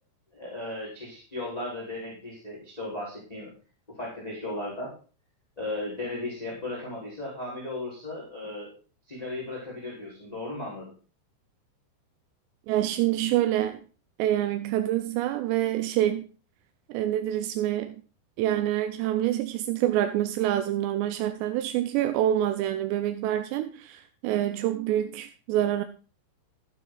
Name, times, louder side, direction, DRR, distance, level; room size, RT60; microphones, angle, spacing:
voice 1, 0.3-3.5 3.9-4.9 5.6-8.7 9.1-10.9, left 2 dB, 10° left, 3.9 m, -36 dB
voice 2, 12.7-13.8 14.2-16.2 16.9-18.0 18.4-25.8, right 12 dB, 90° right, 2.9 m, -26 dB
14.5 x 9.4 x 3.9 m
omnidirectional pair, 4.9 m